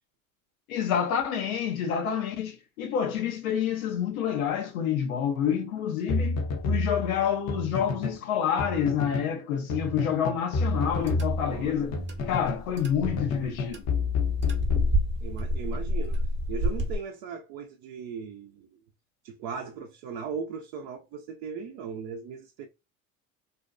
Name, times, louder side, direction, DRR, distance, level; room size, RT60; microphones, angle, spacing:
voice 1, 0.7-11.9 12.2-13.8, left 8 dB, 80° left, 0.7 m, -28 dB
sound 1, 6.1-8.2 8.6-9.4 9.7-12.7 13.0-15.5, left 4 dB, 45° left, 0.7 m, -30 dB
sound 2, 10.6-17.0, equal, 25° right, 0.8 m, -31 dB
voice 2, 11.4-12.0 15.2-16.2 16.5-18.8 19.2-22.7, right 6 dB, 55° right, 0.6 m, -38 dB
2.6 x 2.1 x 2.4 m
hypercardioid pair, 85°, 41 cm